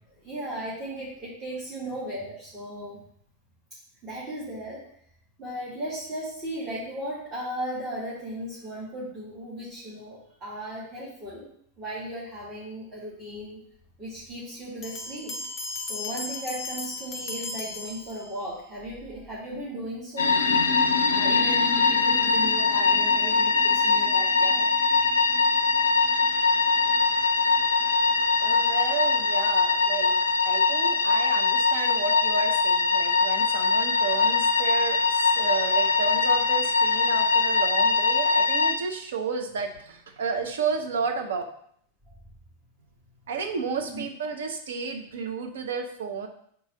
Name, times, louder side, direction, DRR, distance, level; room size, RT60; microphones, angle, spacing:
voice 1, 0.1-3.0 4.0-4.9 5.4-11.5 11.8-13.6 14.0-15.4 15.9-20.4 21.1-24.7 26.2-26.4 43.9-44.0, equal, 25° right, -8 dB, 1.6 m, -36 dB
Bell, 14.8-18.6, left 3 dB, 30° left, 0.7 m, -36 dB
sound 1, 20.2-38.8, left 4 dB, 70° left, 0.4 m, -22 dB
voice 2, 28.4-30.2 30.4-41.4 43.3-46.3, right 5 dB, 60° right, 5 dB, 0.6 m, -32 dB
4.0 x 2.8 x 4.8 m, 0.64 s
figure-of-eight pair, 90°, 0 cm